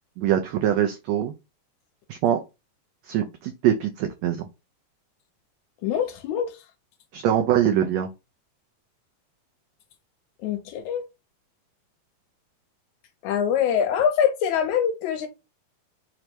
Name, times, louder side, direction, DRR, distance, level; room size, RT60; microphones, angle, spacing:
voice 1, 0.2-1.3 2.1-2.4 3.0-4.5 7.1-8.1, right 10 dB, 90° right, 1.5 m, -23 dB
voice 2, 5.8-6.6 10.4-11.1 13.2-15.3, left 8 dB, 75° left, 1.9 m, -24 dB
5.1 x 2.1 x 4.3 m
omnidirectional pair, 3.6 m